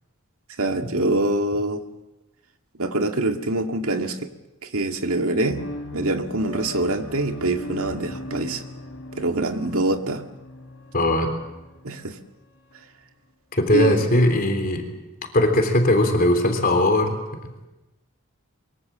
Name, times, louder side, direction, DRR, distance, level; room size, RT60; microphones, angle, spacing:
voice 1, 0.6-1.8 2.8-4.2 4.6-5.6 5.9-8.6 9.2-10.2 11.8-12.1 13.7-14.0, right 2 dB, 75° right, 5 dB, 2.0 m, -24 dB
sound 1, 5.5-12.8, left 1 dB, 65° left, 3.6 m, -39 dB
voice 2, 10.9-11.3 13.5-14.8 15.3-17.7, left 1 dB, 40° left, 6 dB, 3.6 m, -20 dB
24.0 x 23.5 x 7.6 m, 1.0 s
head